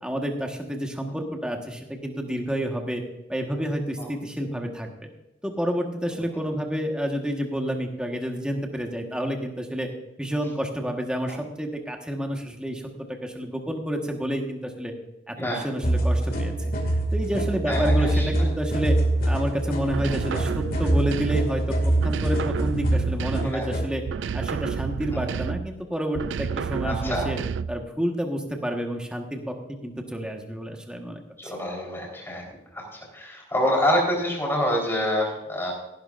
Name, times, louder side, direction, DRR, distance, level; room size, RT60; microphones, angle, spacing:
voice 1, 0.0-3.0 3.3-5.1 5.4-9.9 10.2-12.8 13.2-14.9 15.3-16.5 17.1-19.0 19.2-21.8 22.0-24.0 24.3-27.4 27.7-29.5 29.8-31.5, equal, 5° right, 2 dB, 1.4 m, -29 dB
sound 1, 15.8-23.9, right 1 dB, 50° left, 2.3 m, -25 dB
voice 2, 17.7-18.3 20.1-20.2 23.5-23.7 25.1-25.2 26.8-27.3 31.4-32.5 32.7-32.9 33.1-35.7, equal, 15° left, -1 dB, 4.0 m, -26 dB
sound 2, 19.9-21.6 22.0-23.7 24.1-25.8 26.1-27.9, right 6 dB, 70° right, 0.3 m, -30 dB
16.5 x 11.5 x 2.6 m, 0.92 s
head